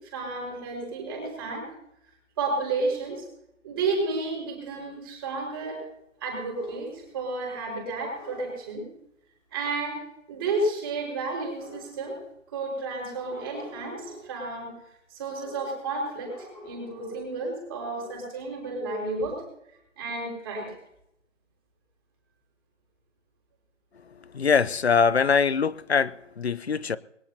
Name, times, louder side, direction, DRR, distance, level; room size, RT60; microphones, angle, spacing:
voice 1, 0.1-1.7 2.4-3.3 3.6-5.8 6.2-8.8 9.5-10.0 10.3-12.2 12.5-14.7 15.1-19.4 20.0-20.7, right 3 dB, 20° right, 5.3 m, -31 dB
sound 1, 6.5-7.1 8.1-8.6 11.5-12.2 13.2-14.3 15.4-15.8 16.2-17.3 17.7-18.1, left 1 dB, 10° left, 6.5 m, -45 dB
voice 2, 24.3-27.0, left 6 dB, 55° left, 0.7 m, -23 dB
22.5 x 18.0 x 2.9 m
figure-of-eight pair, 170°, 38 cm